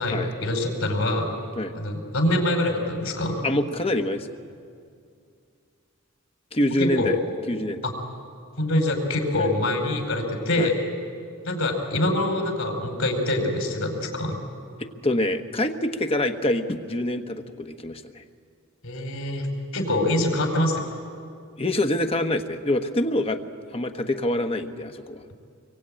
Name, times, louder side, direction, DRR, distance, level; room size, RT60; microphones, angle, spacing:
voice 1, 0.0-1.3 1.7-3.4 6.8-7.1 7.8-7.9 8.6-10.8 11.5-14.4 18.8-21.0, left 1 dB, 70° left, 3 dB, 5.1 m, -25 dB
voice 2, 3.4-4.3 6.5-7.2 7.5-7.9 10.6-10.7 14.8-18.2 21.6-23.5 23.7-25.2, left 1 dB, 25° left, 7 dB, 1.2 m, -25 dB
25.5 x 23.5 x 8.9 m, 2.3 s
head